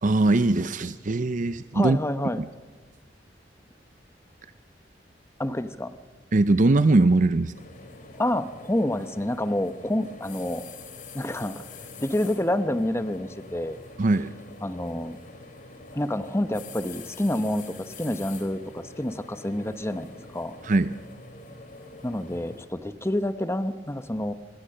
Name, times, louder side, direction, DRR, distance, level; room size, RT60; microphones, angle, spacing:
voice 1, 0.0-2.0 2.4-2.5 6.3-7.5 14.0-14.3 20.6-21.0, right 2 dB, 45° right, 12 dB, 0.6 m, -21 dB
voice 2, 1.7-2.4 5.4-6.0 8.2-10.6 11.1-11.7 12.0-13.8 14.6-15.2 15.9-20.5 22.0-24.3, left 1 dB, 15° left, 11 dB, 0.9 m, -28 dB
sound 1, 7.5-22.6, left 3 dB, 50° left, 2.7 m, -45 dB
25.5 x 21.5 x 6.6 m, 1.4 s
head